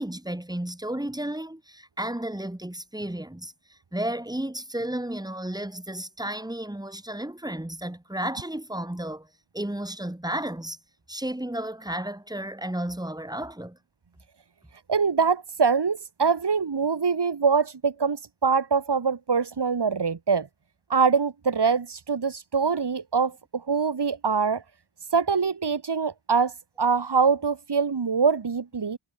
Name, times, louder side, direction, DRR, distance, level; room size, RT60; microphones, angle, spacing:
voice 1, 0.0-9.3 9.5-10.8 11.1-13.8, right 1 dB, 10° right, 4.1 m, -33 dB
voice 2, 14.9-20.5 20.9-24.6 25.1-29.0, right 5 dB, 50° right, 3.0 m, -24 dB
wide cardioid pair, 125°, 50 cm